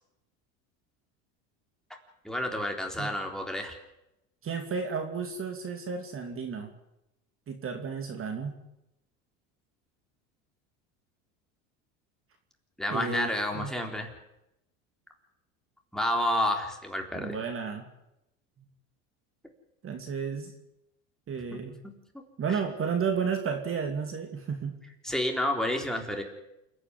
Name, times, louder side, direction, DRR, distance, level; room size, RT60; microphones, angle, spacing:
voice 1, 2.2-3.8 12.8-14.1 15.9-17.3 22.5-22.6 25.0-26.2, left 1 dB, ahead, 2 dB, 3.9 m, -30 dB
voice 2, 4.4-6.7 7.5-8.6 12.9-13.7 17.1-17.8 18.6-18.7 19.8-20.5 21.3-21.8 22.4-24.7, right 6 dB, 35° right, 5 dB, 2.8 m, -32 dB
28.5 x 9.8 x 9.7 m, 0.87 s
supercardioid pair, 105°, 38 cm